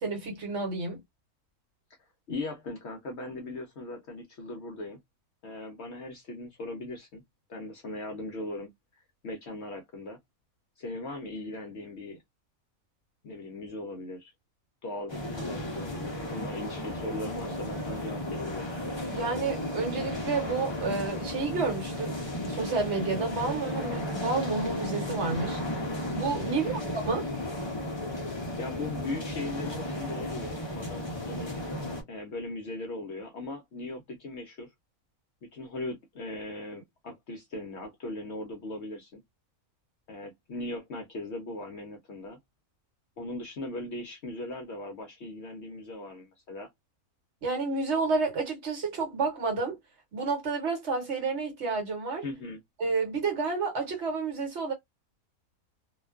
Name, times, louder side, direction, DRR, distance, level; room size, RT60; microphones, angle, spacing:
voice 1, 0.0-1.0 19.1-25.6 26.1-27.3 47.4-49.8 50.1-52.2 52.8-54.7, right 4 dB, 55° right, 1.0 m, -30 dB
voice 2, 2.3-5.0 5.4-7.2 7.5-8.7 9.2-10.2 10.8-12.2 13.2-14.3 14.8-18.7 26.5-26.9 28.1-31.5 32.1-34.7 35.5-39.2 40.1-42.4 43.2-46.7 52.2-52.6, left 2 dB, 65° left, 0.7 m, -39 dB
sound 1, 15.1-32.0, left 1 dB, 45° left, 0.3 m, -34 dB
2.4 x 2.2 x 2.3 m
omnidirectional pair, 1.5 m